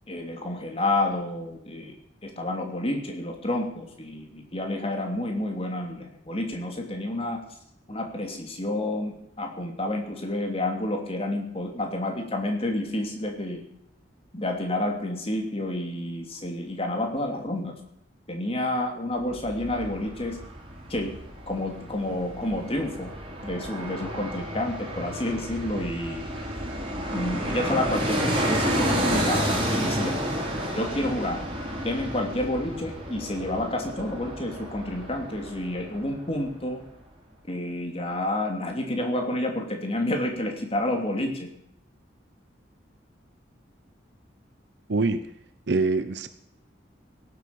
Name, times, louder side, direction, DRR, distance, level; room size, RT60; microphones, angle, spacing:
voice 1, 0.1-1.9 2.2-7.4 7.9-13.6 14.3-17.8 18.3-20.4 20.9-21.2 21.5-23.1 23.4-26.3 27.1-30.2 30.7-31.4 31.8-36.8 37.5-41.5, left 1 dB, 30° left, 2 dB, 2.8 m, -29 dB
Fixed-wing aircraft airplane, 19.2-36.2 36.5-36.6, equal, 30° right, 4.7 m, -31 dB
voice 2, 44.9-45.3 45.7-46.3, right 3 dB, 65° right, 11 dB, 0.8 m, -24 dB
17.0 x 8.2 x 7.0 m, 0.75 s
head